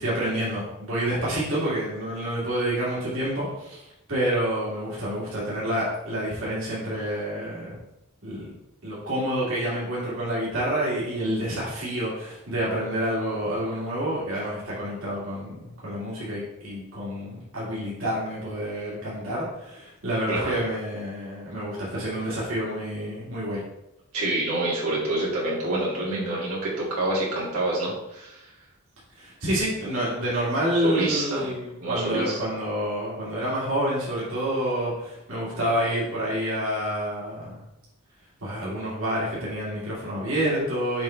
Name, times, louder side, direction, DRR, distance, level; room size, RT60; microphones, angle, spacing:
voice 1, 0.0-7.8 8.2-8.6 8.8-23.6 29.2-37.6 38.4-41.0, right 1 dB, 60° right, -8 dB, 2.1 m, -28 dB
voice 2, 20.3-20.6 24.1-28.4 30.8-31.5 31.8-32.4, right 2 dB, 85° right, -6 dB, 2.5 m, -27 dB
7.0 x 5.1 x 3.3 m, 0.89 s
head